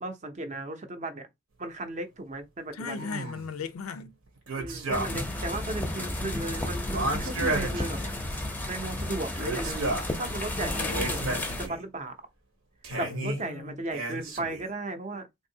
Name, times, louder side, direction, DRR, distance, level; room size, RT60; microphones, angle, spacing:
voice 1, 0.0-1.3 1.6-3.1 4.6-8.0 8.7-12.2 13.0-15.3, right 2 dB, 35° right, 0.6 m, -36 dB
voice 2, 2.7-4.2 10.6-11.6 12.9-13.8, left 5 dB, 90° left, 0.4 m, -38 dB
sound 1, 3.0-3.5 4.5-5.4 5.7-5.8 6.9-8.4 9.3-10.2 10.7-11.8 12.8-13.4 13.9-14.7, right 2 dB, 85° right, 1.1 m, -33 dB
sound 2, 4.9-11.7, left 1 dB, 10° left, 0.5 m, -32 dB
3.5 x 2.7 x 2.6 m
head